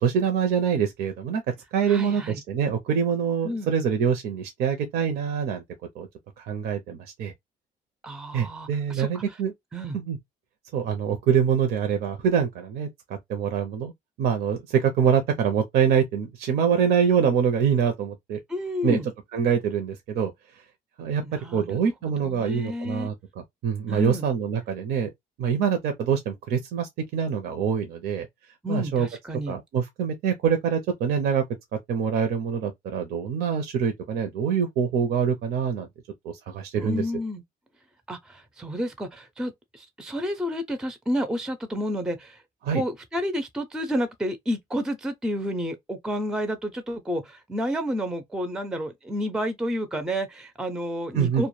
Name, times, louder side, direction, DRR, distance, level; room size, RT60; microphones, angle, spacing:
voice 1, 0.0-1.4 1.7-5.6 6.0-6.1 6.4-7.3 8.3-9.5 9.9-10.2 10.7-13.9 14.2-18.4 18.8-19.0 19.3-20.3 21.0-25.1 25.4-28.3 28.7-29.1 29.5-31.4 31.9-35.9 36.2-37.0 42.6-42.8 51.1-51.4, right 7 dB, 70° right, 0.5 m, -25 dB
voice 2, 1.9-2.4 3.4-3.7 8.0-9.4 9.7-10.0 18.5-19.1 21.2-23.1 23.9-24.3 28.6-29.6 36.8-37.4 38.1-42.4 42.7-51.5, equal, 5° right, 0.4 m, -30 dB
2.1 x 2.1 x 2.9 m
cardioid pair, 110°, 17 cm